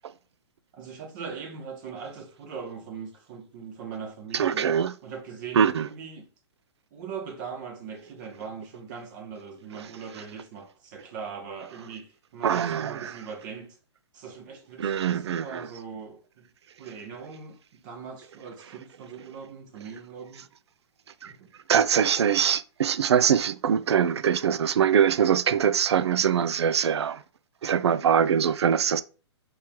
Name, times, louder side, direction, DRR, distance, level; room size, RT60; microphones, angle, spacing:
voice 1, 0.8-4.7 5.0-6.3 6.9-13.8 14.1-16.5 16.8-20.5 21.2-21.5, right 6 dB, 45° right, 1.7 m, -40 dB
voice 2, 4.3-4.9 5.6-5.9 12.4-13.1 14.8-15.7 21.2-21.3 21.7-27.2 27.6-29.0, right 8 dB, 70° right, 0.4 m, -23 dB
4.5 x 3.2 x 3.6 m
figure-of-eight pair, 120°, 15 cm